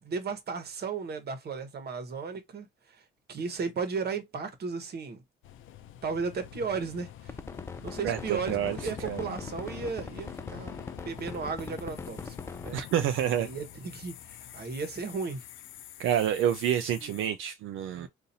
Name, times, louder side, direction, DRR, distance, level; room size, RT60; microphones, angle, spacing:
voice 1, 0.0-5.2 6.0-7.4 7.8-12.8 13.3-15.4 17.0-17.2 17.9-18.1, right 5 dB, 55° right, 1.1 m, -35 dB
sound 1, 5.4-17.3, left 11 dB, 80° left, 0.5 m, -46 dB
sound 2, 7.3-12.9, left 3 dB, 15° left, 0.3 m, -40 dB
voice 2, 8.0-9.3 12.7-13.5 16.0-18.1, right 10 dB, 85° right, 0.5 m, -28 dB
4.0 x 2.6 x 2.7 m
cardioid pair, 90°, 20 cm